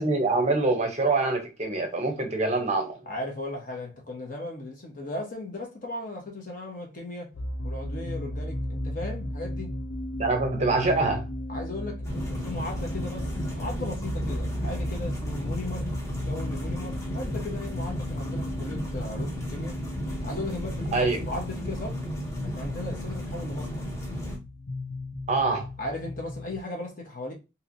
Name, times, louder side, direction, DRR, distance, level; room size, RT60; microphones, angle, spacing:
voice 1, 0.0-3.0 10.2-11.2 20.9-21.2 25.3-25.7, right 3 dB, 35° right, 0.6 m, -25 dB
voice 2, 3.0-7.3 7.6-9.8 11.5-19.8 20.2-22.0 22.4-23.9 25.8-27.3, left 2 dB, 45° left, 0.9 m, -37 dB
sound 1, 7.3-26.6, left 1 dB, 80° left, 0.6 m, -36 dB
sound 2, 12.0-24.4, equal, 15° left, 0.7 m, -34 dB
3.0 x 2.8 x 2.6 m
head